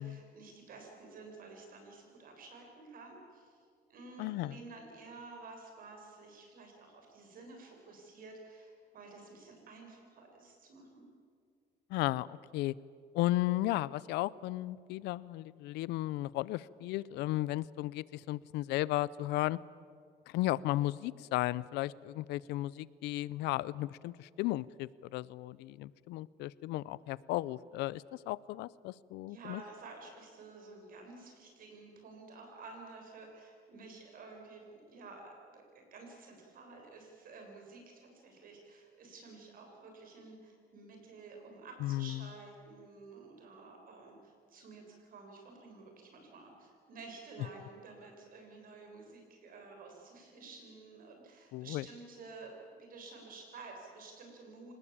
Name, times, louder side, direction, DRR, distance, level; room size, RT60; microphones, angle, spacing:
voice 1, 0.0-11.0 29.2-54.7, right 3 dB, 55° right, 2 dB, 7.3 m, -52 dB
voice 2, 4.2-4.6 11.9-12.8 13.1-19.6 20.3-29.6 41.8-42.3 51.5-51.8, left 17 dB, 90° left, 21 dB, 0.6 m, -35 dB
26.0 x 19.5 x 8.7 m, 2.1 s
cardioid pair, 110°, 17 cm